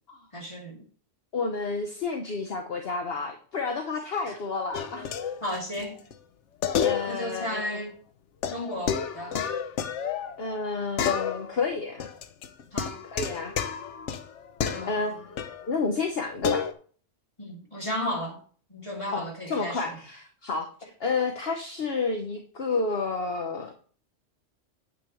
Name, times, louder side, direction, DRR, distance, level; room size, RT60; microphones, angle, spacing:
voice 1, 0.3-0.8 4.3-4.4 5.4-6.0 7.1-8.0 8.5-9.4 12.7-13.0 14.6-15.2 17.4-18.4 18.7-20.0, left 1 dB, 25° left, 2.5 m, -34 dB
voice 2, 1.3-5.1 6.8-7.8 10.4-12.1 13.0-13.5 14.8-15.3 15.7-16.7 19.1-23.7, left 4 dB, 55° left, 1.2 m, -30 dB
sound 1, 4.7-5.8 6.1-6.2 6.6-7.4 7.7-7.8 8.4-10.7 11.0-11.7 12.0-15.7 16.4-16.7, left 7 dB, 75° left, 1.0 m, -30 dB
9.4 x 8.5 x 3.1 m
omnidirectional pair, 1.3 m